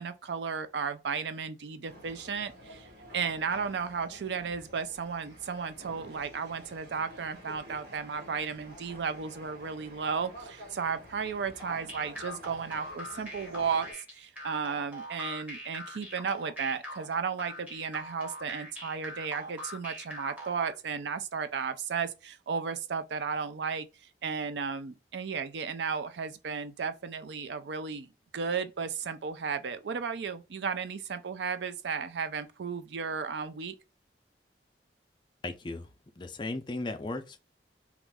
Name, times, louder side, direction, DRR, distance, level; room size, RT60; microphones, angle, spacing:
voice 1, 0.0-2.9 3.1-23.9 24.2-33.7, right 6 dB, 80° right, 0.4 m, -34 dB
sound 1, 1.9-13.9, equal, 60° right, 1.4 m, -49 dB
sound 2, 11.6-20.7, equal, 10° right, 0.8 m, -43 dB
voice 2, 35.4-35.9 36.2-37.4, left 2 dB, 25° left, 0.4 m, -36 dB
3.0 x 2.4 x 3.4 m
head